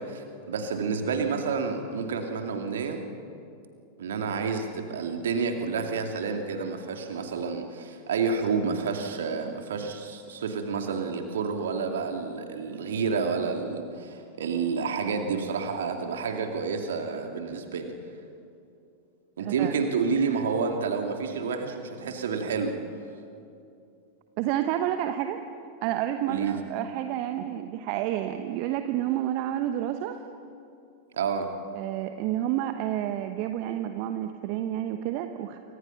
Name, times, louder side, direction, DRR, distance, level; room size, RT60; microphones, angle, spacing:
voice 1, 0.0-3.0 4.0-17.9 19.4-22.8 26.3-26.6 31.1-31.5, right 5 dB, 60° right, 5 dB, 2.5 m, -29 dB
voice 2, 19.4-19.7 24.4-25.4 25.8-30.2 31.7-35.6, right 12 dB, 45° right, 8 dB, 1.1 m, -29 dB
28.0 x 24.5 x 5.9 m, 2.6 s
figure-of-eight pair, 90°, 0 cm